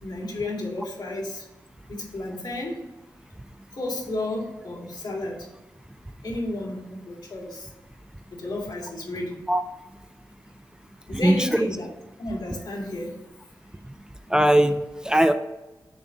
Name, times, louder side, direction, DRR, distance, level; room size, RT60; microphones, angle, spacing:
voice 1, 0.0-1.4 1.9-2.7 3.7-5.4 6.2-7.7 8.3-9.4 11.1-11.9 12.2-13.1, left 1 dB, 65° left, -2 dB, 2.0 m, -32 dB
voice 2, 11.1-11.7 14.3-15.3, right 1 dB, 10° right, 8 dB, 0.4 m, -20 dB
7.1 x 2.6 x 5.7 m, 1.0 s
cardioid pair, 55°, 8 cm